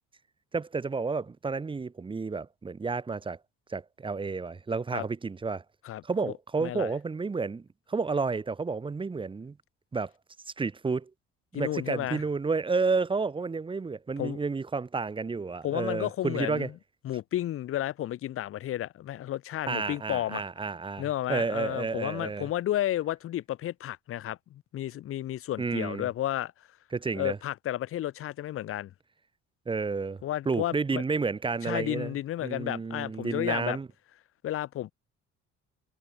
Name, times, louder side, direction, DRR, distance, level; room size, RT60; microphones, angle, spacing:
voice 1, 0.5-3.4 3.7-5.6 6.0-9.6 9.9-10.1 10.6-11.1 11.5-16.7 19.7-22.5 25.6-26.1 26.9-27.4 29.7-32.1 32.4-33.9, right 4 dB, 15° right, 0.6 m, -31 dB
voice 2, 5.8-6.3 6.6-6.9 11.5-12.2 14.2-14.4 15.6-16.7 17.0-20.4 21.0-26.5 27.1-28.9 30.2-31.0 31.6-33.8 34.4-34.9, left 13 dB, 45° left, 0.5 m, -32 dB
cardioid pair, 90°, 31 cm